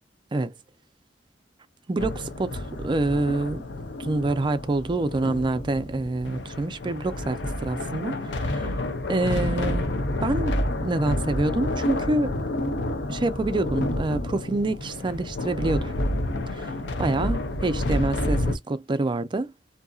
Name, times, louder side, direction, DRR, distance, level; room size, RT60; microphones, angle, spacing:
voice 1, 1.9-3.6 4.0-8.8 9.1-12.4 13.1-15.9 16.5-19.5, right 2 dB, 25° right, 0.4 m, -27 dB
sound 1, 2.0-18.6, left 1 dB, 75° left, 0.6 m, -29 dB
2.7 x 2.5 x 2.2 m
head